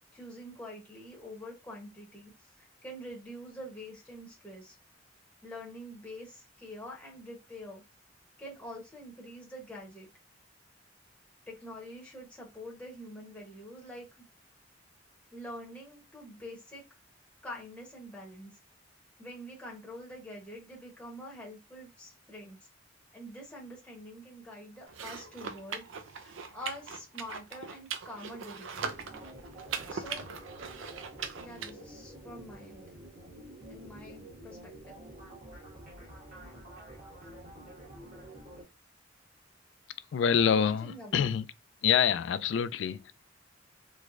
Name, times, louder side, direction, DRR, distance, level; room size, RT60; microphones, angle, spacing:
voice 1, 0.1-2.3 2.6-4.7 5.4-7.8 8.4-10.1 11.5-14.2 15.3-16.9 17.4-18.5 19.2-22.6 23.1-25.8 26.2-29.1 29.9-30.2 31.4-32.8 33.7-35.0 40.5-41.2, equal, 5° left, 0.8 m, -46 dB
sound 1, 24.9-31.7, right 6 dB, 85° right, 0.5 m, -40 dB
sound 2, 28.9-38.6, right 1 dB, 40° right, 1.3 m, -49 dB
voice 2, 40.1-41.5 41.8-43.1, left 8 dB, 70° left, 0.3 m, -26 dB
3.2 x 3.1 x 2.4 m
head